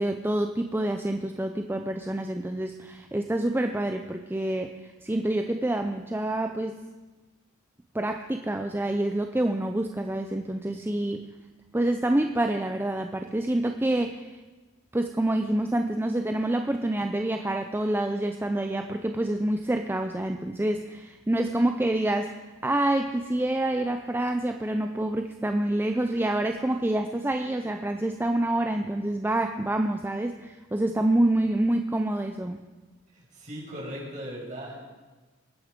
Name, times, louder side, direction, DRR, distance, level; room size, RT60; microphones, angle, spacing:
voice 1, 0.0-6.7 7.9-11.3 11.7-14.4 14.9-32.6, right 1 dB, 10° right, 6 dB, 0.5 m, -27 dB
voice 2, 33.1-34.8, equal, 40° right, -4 dB, 6.2 m, -38 dB
22.0 x 9.6 x 5.2 m, 1.2 s
head